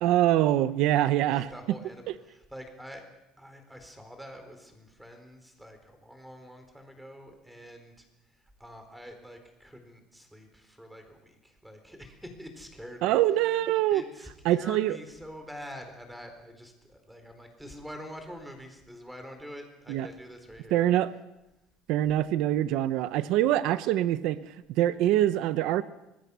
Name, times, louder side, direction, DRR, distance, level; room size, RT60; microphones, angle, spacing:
voice 1, 0.0-1.5 13.0-14.0 14.4-15.0 19.9-20.1 20.7-21.1 21.9-25.8, right 13 dB, 65° right, 13 dB, 0.8 m, -24 dB
voice 2, 1.3-3.1 3.4-20.9, equal, 5° right, 6 dB, 4.0 m, -46 dB
25.0 x 20.5 x 6.9 m, 0.96 s
cardioid pair, 155°, 0 cm